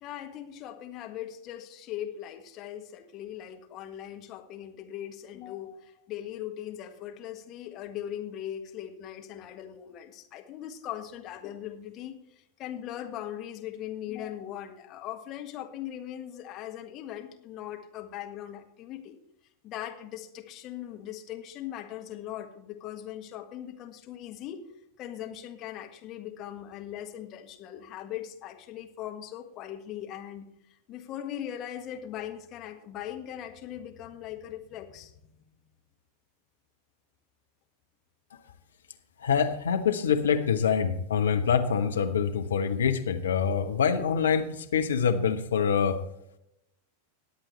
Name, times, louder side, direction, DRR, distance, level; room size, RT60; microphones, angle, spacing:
voice 1, 0.0-19.2 19.6-24.6 25.0-35.1, left 11 dB, 35° left, 4 dB, 1.6 m, -40 dB
voice 2, 39.2-46.0, left 7 dB, 65° left, 6 dB, 1.1 m, -25 dB
20.0 x 8.2 x 3.3 m, 0.81 s
figure-of-eight pair, 90°, 0 cm